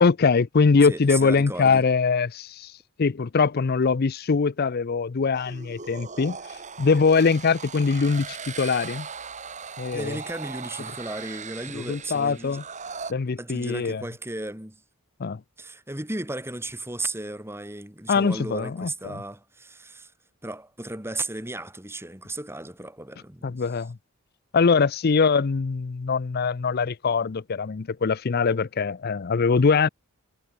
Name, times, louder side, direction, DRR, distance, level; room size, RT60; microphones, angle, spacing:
voice 1, 0.0-2.7 3.0-6.4 6.8-9.1 9.8-10.2 11.7-12.6 13.1-14.0 15.2-15.4 18.1-19.2 23.4-24.0 24.5-29.9, left 5 dB, 45° left, 0.5 m, -22 dB
voice 2, 0.8-1.9 9.9-12.6 13.4-14.8 15.6-20.1 20.4-23.7, right 2 dB, 10° right, 3.3 m, -35 dB
sound 1, 5.3-13.1, right 5 dB, 35° right, 2.5 m, -39 dB
head